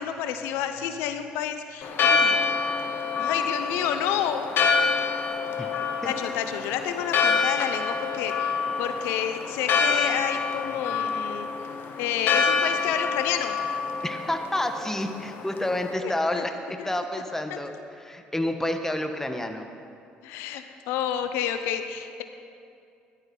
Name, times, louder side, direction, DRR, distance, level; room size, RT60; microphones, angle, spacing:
voice 1, 0.0-2.4 3.2-4.5 6.0-11.5 12.0-13.5 16.0-16.4 16.8-16.9 17.5-17.6 20.2-22.2, left 9 dB, 80° left, 8 dB, 0.8 m, -30 dB
Church bell, 1.8-15.9, left 5 dB, 60° left, 1.2 m, -27 dB
voice 2, 14.0-19.7, left 1 dB, 10° left, 6 dB, 1.3 m, -29 dB
14.5 x 11.5 x 5.4 m, 2.5 s
supercardioid pair, 65°, 4 cm